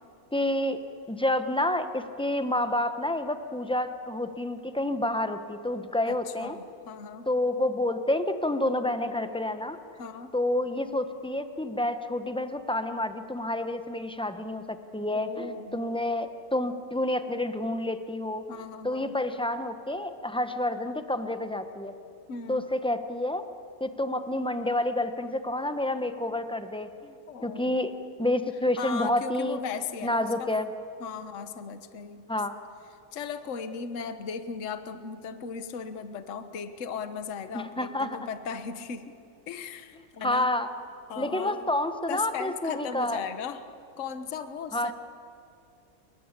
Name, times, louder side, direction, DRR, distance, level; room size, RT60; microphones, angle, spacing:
voice 1, 0.3-0.8 1.1-6.6 7.3-9.8 10.3-18.4 18.8-21.9 22.5-23.4 23.8-27.1 27.4-27.9 28.2-29.6 30.0-30.7 32.3-32.5 37.5-38.2 40.2-40.7 41.2-43.2 44.7-45.0, left 1 dB, 5° left, 8 dB, 0.8 m, -29 dB
voice 2, 6.0-7.3 10.0-10.3 15.1-15.8 18.5-19.1 22.3-22.7 27.3-27.8 28.8-30.5 31.0-32.2 33.1-39.1 39.5-40.5 41.1-41.6 42.1-43.6 44.0-44.9, left 6 dB, 45° left, 9 dB, 1.4 m, -37 dB
29.0 x 22.5 x 8.3 m, 2.5 s
omnidirectional pair, 2.0 m